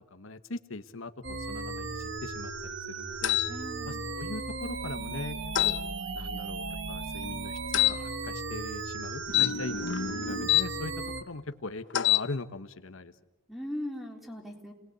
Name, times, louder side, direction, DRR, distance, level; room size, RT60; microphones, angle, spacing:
voice 1, 0.1-3.4 3.9-5.4 5.6-5.8 6.1-9.8 10.2-13.1, left 2 dB, 75° left, 9 dB, 1.2 m, -40 dB
sound 1, 1.2-11.2, right 3 dB, 60° right, 1.6 m, -36 dB
sound 2, 3.2-3.5 5.6-5.8 7.7-8.0 9.3-10.7 11.9-12.3, left 13 dB, 55° left, 0.8 m, -25 dB
voice 2, 3.5-4.0 13.5-14.7, left 1 dB, ahead, 3 dB, 3.6 m, -39 dB
30.0 x 20.0 x 8.2 m, 1.0 s
head